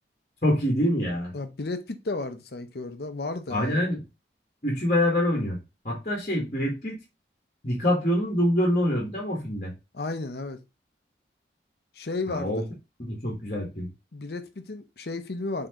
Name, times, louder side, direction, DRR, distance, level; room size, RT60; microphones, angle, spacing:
voice 1, 0.4-1.3 3.5-4.0 4.6-5.6 5.8-6.9 7.6-9.7 12.3-12.6 13.0-13.9, left 1 dB, 40° left, 1.4 m, -25 dB
voice 2, 1.3-3.8 9.9-10.6 11.9-12.6 14.1-15.7, left 3 dB, 60° left, 0.7 m, -33 dB
4.4 x 3.6 x 2.8 m
head